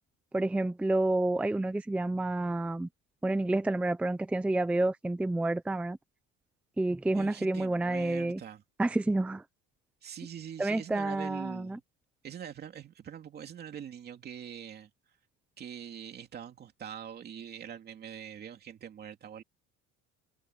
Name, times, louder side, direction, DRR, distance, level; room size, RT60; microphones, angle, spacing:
voice 1, 0.3-2.9 3.2-6.0 6.8-8.4 8.8-9.4 10.6-11.8, right 2 dB, 5° right, 0.6 m, -29 dB
voice 2, 7.1-8.6 10.0-11.8 12.2-14.9 15.6-19.4, right 9 dB, 30° right, 2.7 m, -44 dB
cardioid pair, 165°, 31 cm